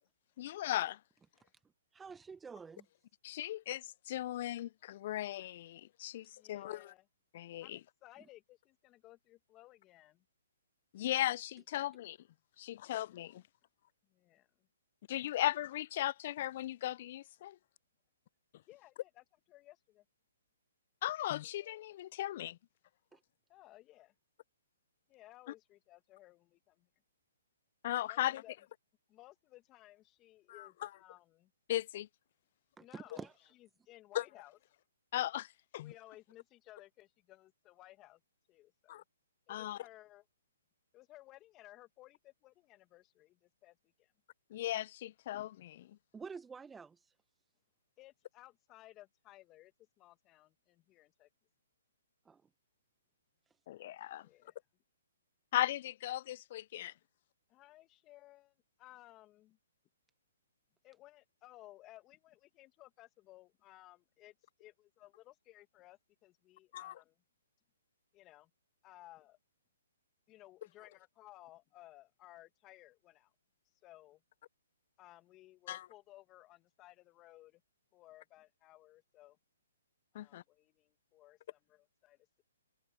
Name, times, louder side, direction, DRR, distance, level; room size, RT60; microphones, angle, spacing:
voice 1, 0.4-1.0 3.2-6.8 7.3-7.8 10.9-12.2 12.6-13.4 15.1-17.6 21.0-22.6 27.8-28.4 30.6-30.9 31.7-32.1 34.1-34.2 35.1-35.9 38.9-39.0 39.5-39.8 44.5-46.0 53.7-54.3 55.5-56.9 66.7-67.0 75.7-75.9 80.1-80.4, left 13 dB, 45° left, 0.3 m, -37 dB
voice 2, 1.9-2.9 23.1-23.2 32.8-33.3 46.1-47.1 52.3-52.4 53.5-53.6, right 5 dB, 10° right, 0.7 m, -48 dB
voice 3, 6.3-7.1 7.6-10.3 14.0-14.7 18.7-20.1 23.5-24.1 25.1-26.9 28.1-28.6 29.1-31.5 32.8-34.6 35.8-38.2 38.5-39.0 39.5-40.2 40.9-44.1 48.0-51.3 54.2-54.6 57.5-59.6 60.8-67.2 68.1-68.5 68.8-69.4 70.3-73.3 73.7-74.2 75.0-77.6 77.9-79.4 80.1-82.3, left 16 dB, 25° left, 1.8 m, -59 dB
hypercardioid pair, 130°, 0 cm